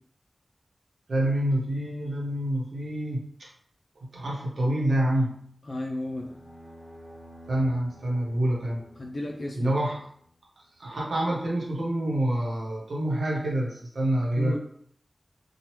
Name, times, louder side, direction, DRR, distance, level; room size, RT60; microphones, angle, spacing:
voice 1, 1.1-3.5 4.1-5.5 7.5-8.8 9.5-10.0 10.8-14.6, right 1 dB, 85° right, -3 dB, 0.9 m, -27 dB
voice 2, 5.6-6.3 9.0-9.7 14.4-14.6, left 1 dB, 70° left, -1 dB, 0.4 m, -33 dB
sound 1, 6.0-10.3, equal, 30° right, 1.3 m, -50 dB
2.9 x 2.3 x 3.1 m, 0.62 s
cardioid pair, 45°, 0 cm